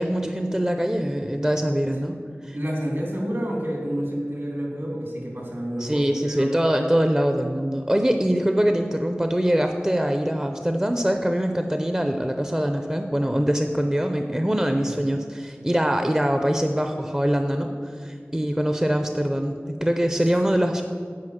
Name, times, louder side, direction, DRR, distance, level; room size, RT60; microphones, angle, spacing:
voice 1, 0.0-2.2 2.4-2.6 5.8-20.8, equal, 15° right, 5 dB, 0.5 m, -23 dB
voice 2, 2.5-6.5 14.8-14.9 20.5-20.6, equal, 65° right, -1 dB, 2.4 m, -29 dB
9.5 x 4.8 x 7.8 m, 2.1 s
wide cardioid pair, 45°, 4 cm